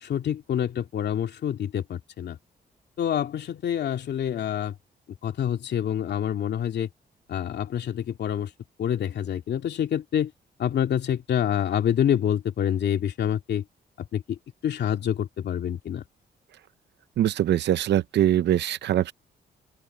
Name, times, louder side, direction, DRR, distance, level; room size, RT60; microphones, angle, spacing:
voice 1, 0.0-2.4 3.0-4.7 5.2-6.9 7.3-8.5 8.8-10.3 10.6-13.6 14.0-14.4 14.6-16.0, left 9 dB, 75° left, 2.6 m, -27 dB
voice 2, 17.2-19.1, right 11 dB, 85° right, 0.8 m, -22 dB
open air
cardioid pair, 120°, 17 cm